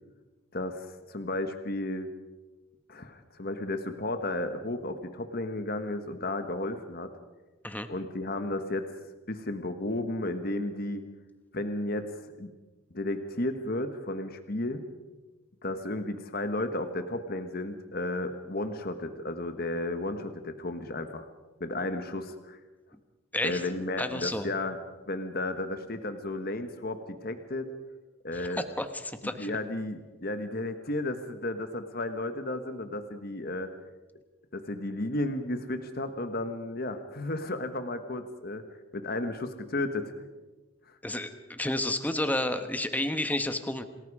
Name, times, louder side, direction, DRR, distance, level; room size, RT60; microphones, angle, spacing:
voice 1, 0.5-2.1 2.9-7.1 7.9-8.9 9.3-11.0 11.5-12.5 12.9-14.8 15.6-21.3 21.6-22.6 23.4-24.8 25.1-27.7 28.2-28.6 29.4-33.7 34.5-38.6 38.9-40.1 40.9-41.0, left 2 dB, 45° left, 8 dB, 1.4 m, -33 dB
voice 2, 24.0-24.5 28.3-29.5 41.0-43.8, left 1 dB, 10° left, 8 dB, 1.2 m, -31 dB
28.0 x 20.0 x 4.9 m, 1.2 s
head